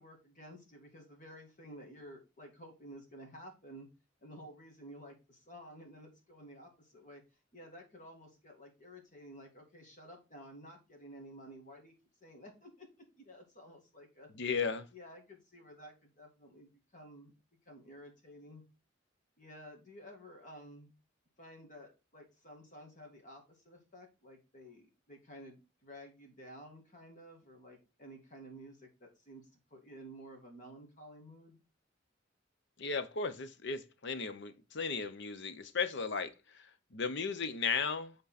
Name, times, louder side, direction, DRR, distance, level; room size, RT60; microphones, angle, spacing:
voice 1, 0.0-3.9 4.2-7.2 7.5-11.9 12.2-12.9 13.2-14.3 14.9-17.3 17.7-18.6 19.4-20.9 21.4-31.6, equal, 40° left, 2.0 m, -53 dB
voice 2, 14.3-14.9 32.8-36.3 36.5-36.6 36.9-38.1, left 5 dB, 65° left, 0.8 m, -35 dB
8.3 x 3.9 x 4.1 m
head